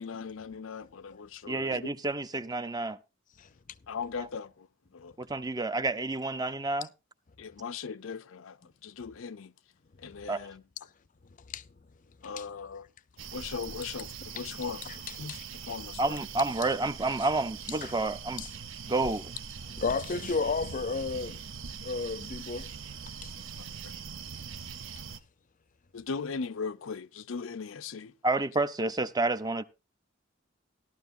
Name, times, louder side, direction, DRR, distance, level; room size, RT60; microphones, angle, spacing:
voice 1, 0.0-1.9 3.9-4.7 4.9-5.2 7.4-9.5 10.0-10.6 12.2-12.9 13.3-14.8 15.2-15.4 15.6-16.2 23.6-23.9 25.9-28.1, left 5 dB, 85° left, 0.6 m, -39 dB
voice 2, 1.5-3.0 4.2-4.3 5.2-6.9 10.3-10.4 16.0-18.4 18.9-19.3 28.2-29.6, right 2 dB, 20° right, 0.6 m, -29 dB
sound 1, 13.2-25.2, right 6 dB, 75° right, 0.8 m, -42 dB
voice 3, 19.7-21.4 21.8-22.7 23.2-23.3, left 4 dB, 40° left, 0.5 m, -33 dB
15.0 x 12.0 x 2.6 m
head